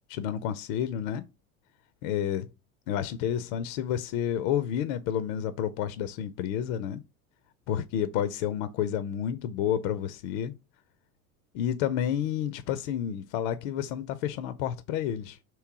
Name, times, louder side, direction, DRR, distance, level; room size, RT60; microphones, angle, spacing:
voice 1, 0.1-1.2 2.0-2.5 2.9-7.0 7.7-10.5 11.5-15.4, left 9 dB, 65° left, 0.5 m, -30 dB
3.3 x 3.0 x 4.6 m
hypercardioid pair, 85°, 43 cm